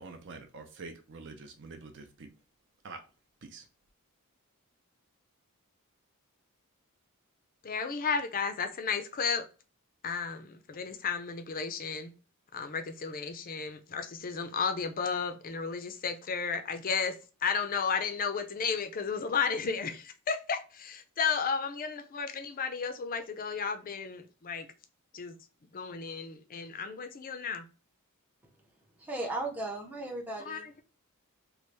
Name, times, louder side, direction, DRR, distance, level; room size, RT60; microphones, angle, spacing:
voice 1, 0.0-2.3 2.8-3.0 3.4-3.6, right 3 dB, 55° right, 0.6 m, -46 dB
voice 2, 7.6-9.5 10.0-12.1 12.5-24.7 25.1-25.4 25.7-27.6 30.4-30.8, left 5 dB, 40° left, 0.5 m, -33 dB
voice 3, 29.0-30.7, right 2 dB, 5° right, 0.6 m, -36 dB
3.1 x 2.4 x 3.2 m
head